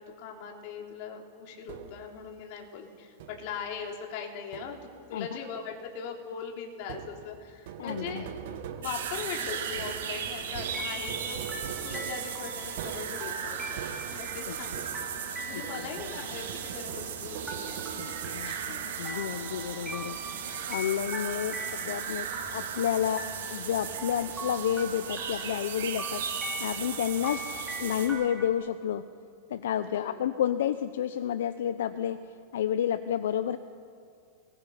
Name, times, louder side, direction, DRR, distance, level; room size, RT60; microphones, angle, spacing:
voice 1, 0.2-4.8 5.1-8.3 8.8-11.4 11.8-13.8 14.1-18.1 18.4-18.8 29.9-30.2, left 6 dB, 50° left, 0 dB, 3.7 m, -40 dB
sound 1, 1.7-2.2 3.2-3.7 4.5-5.1 6.8-15.3 15.6-18.8, right 8 dB, 65° right, 1.9 m, -43 dB
voice 2, 7.8-8.2 14.5-14.6 15.5-15.9 18.0-22.3 22.5-23.3 23.5-26.2 26.6-27.4 27.8-29.0 29.5-32.2 32.5-33.6, left 10 dB, 80° left, 11 dB, 0.8 m, -30 dB
sound 2, 8.8-28.1, right 7 dB, 85° right, 5.1 m, -37 dB
sound 3, 10.7-28.5, right 1 dB, 10° right, 3.7 m, -42 dB
28.0 x 20.0 x 5.9 m, 2.3 s
supercardioid pair, 140°, 0 cm